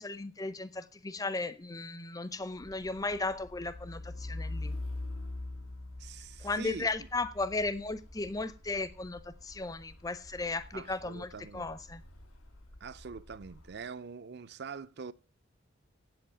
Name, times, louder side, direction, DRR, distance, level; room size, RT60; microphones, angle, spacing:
voice 1, 0.0-4.8 6.4-12.0, left 3 dB, 15° left, 0.5 m, -36 dB
Truck, 2.4-13.8, left 2 dB, 80° left, 1.8 m, -44 dB
voice 2, 6.0-6.9 10.7-11.7 12.8-15.1, right 5 dB, 50° right, 0.5 m, -44 dB
8.0 x 7.9 x 8.6 m
head